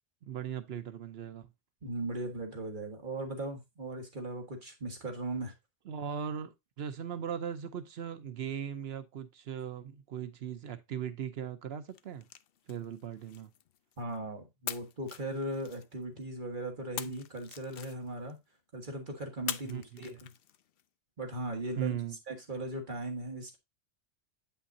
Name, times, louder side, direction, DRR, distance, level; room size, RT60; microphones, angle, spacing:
voice 1, 0.2-1.5 5.9-12.3 12.7-13.5 19.6-20.1 21.8-22.2, right 8 dB, 80° right, 1.0 m, -38 dB
voice 2, 1.8-5.5 14.0-18.4 18.7-20.3 21.2-22.0 22.3-23.6, right 1 dB, 50° right, 1.8 m, -38 dB
sound 1, 11.9-14.2 14.7-16.2 17.0-18.4 19.5-20.8, left 10 dB, 70° left, 0.8 m, -44 dB
8.7 x 5.7 x 2.6 m
omnidirectional pair, 1.0 m